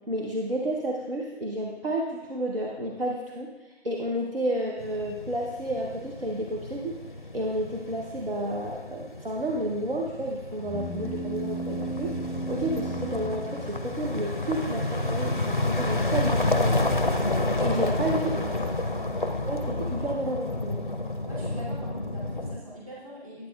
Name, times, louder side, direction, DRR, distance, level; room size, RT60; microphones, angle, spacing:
voice 1, 0.1-3.5 3.8-7.0 7.3-12.2 12.5-16.8 17.6-18.7 19.2-20.8, right 1 dB, 55° right, -1 dB, 0.9 m, -31 dB
sound 1, 4.8-22.6, left 2 dB, 45° left, 0.6 m, -30 dB
sound 2, 10.6-14.3, right 2 dB, ahead, 0.3 m, -35 dB
voice 2, 17.5-18.0 18.6-19.0 21.3-23.5, right 1 dB, 30° right, -8 dB, 2.6 m, -42 dB
9.0 x 8.8 x 2.3 m, 1.1 s
figure-of-eight pair, 170°, 34 cm